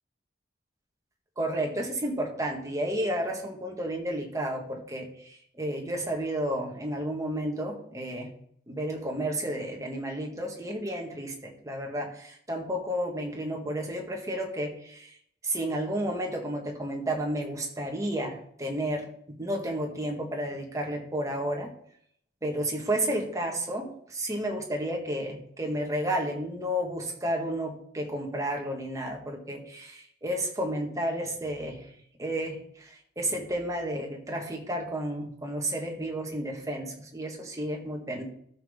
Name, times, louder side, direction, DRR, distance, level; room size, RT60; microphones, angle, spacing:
voice 1, 1.4-8.3 8.7-15.1 15.4-21.7 22.4-31.9 32.2-38.2, right 1 dB, 15° right, 1 dB, 1.6 m, -32 dB
13.5 x 5.5 x 3.7 m, 0.66 s
head